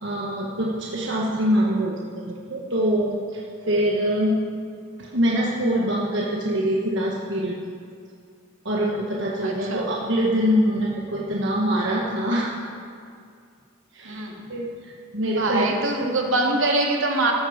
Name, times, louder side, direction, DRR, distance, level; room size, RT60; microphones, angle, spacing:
voice 1, 0.0-3.4 3.7-4.4 5.0-7.7 8.6-12.5 13.9-14.2 14.5-15.8, equal, 60° right, -3 dB, 1.4 m, -24 dB
voice 2, 9.4-9.8 14.0-14.3 15.3-17.3, right 2 dB, 80° right, 0 dB, 2.2 m, -23 dB
14.0 x 12.5 x 5.1 m, 2.2 s
head